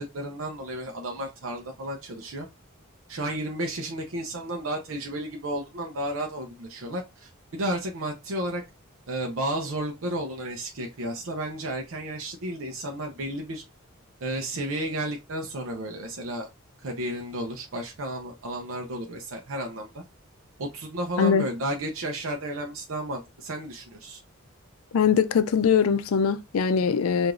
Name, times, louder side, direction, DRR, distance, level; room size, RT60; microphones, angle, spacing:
voice 1, 0.0-2.5 3.1-8.6 9.1-13.6 14.2-16.5 16.8-20.0 20.6-24.2, right 1 dB, 70° right, 0.6 m, -32 dB
voice 2, 24.9-27.3, left 6 dB, 85° left, 0.4 m, -22 dB
4.8 x 2.6 x 2.5 m
head